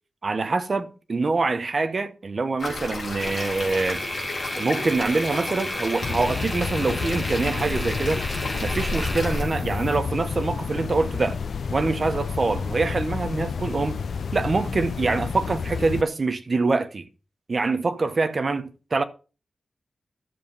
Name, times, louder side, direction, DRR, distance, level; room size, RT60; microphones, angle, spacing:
voice 1, 0.2-4.0 4.6-8.3 8.6-11.4 11.7-14.0 14.3-17.1 17.5-19.0, right 3 dB, 40° right, 1.0 m, -25 dB
sound 1, 2.6-9.4, left 2 dB, 50° left, 3.5 m, -32 dB
sound 2, 3.2-10.0, equal, ahead, 1.6 m, -34 dB
sound 3, 6.0-16.0, left 5 dB, 90° left, 0.6 m, -30 dB
12.0 x 7.2 x 5.4 m
wide cardioid pair, 175°, 0 cm